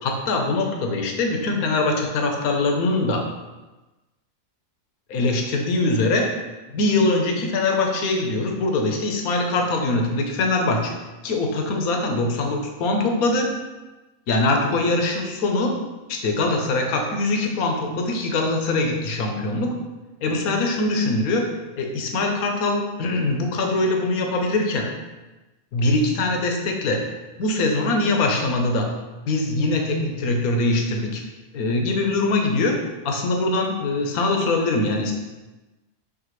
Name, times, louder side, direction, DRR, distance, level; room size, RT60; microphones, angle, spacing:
voice 1, 0.0-3.3 5.1-6.3 6.7-10.9 11.2-13.5 14.3-15.8 16.1-19.8 20.2-24.9 25.7-27.1 27.4-28.9 29.3-31.2 31.5-32.8 33.0-35.1, left 2 dB, 75° left, 3 dB, 1.3 m, -22 dB
6.0 x 4.9 x 3.1 m, 1.1 s
omnidirectional pair, 1.6 m